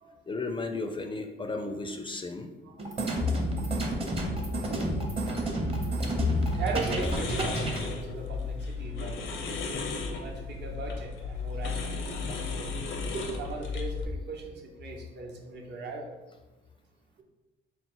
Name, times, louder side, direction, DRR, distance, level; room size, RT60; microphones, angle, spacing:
voice 1, 0.3-2.5 3.2-3.3 6.2-6.3, left 4 dB, 25° left, 5 dB, 0.4 m, -32 dB
voice 2, 2.7-3.0 3.6-3.7 6.5-9.4 10.1-12.0 12.3-16.1, right 3 dB, 60° right, 1 dB, 0.8 m, -38 dB
sound 1, 2.8-7.8, right 1 dB, 30° right, 0.8 m, -30 dB
sound 2, 6.3-14.1, left 4 dB, 80° left, 0.6 m, -35 dB
4.1 x 2.0 x 4.4 m, 1.1 s
cardioid pair, 90°, 20 cm